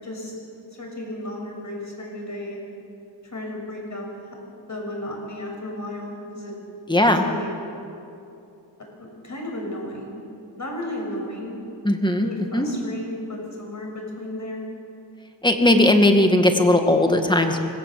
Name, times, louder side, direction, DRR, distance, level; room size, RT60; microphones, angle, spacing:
voice 1, 0.0-0.3 0.7-2.6 3.2-4.1 4.7-6.5 7.0-7.6 9.0-10.2 10.6-11.6 12.2-14.6, left 1 dB, 40° left, 0 dB, 6.8 m, -34 dB
voice 2, 6.9-7.3 11.8-12.3 12.5-12.7 15.4-17.6, left 1 dB, 10° left, 4 dB, 2.1 m, -18 dB
25.5 x 20.5 x 7.8 m, 2.7 s
wide cardioid pair, 125°, 46 cm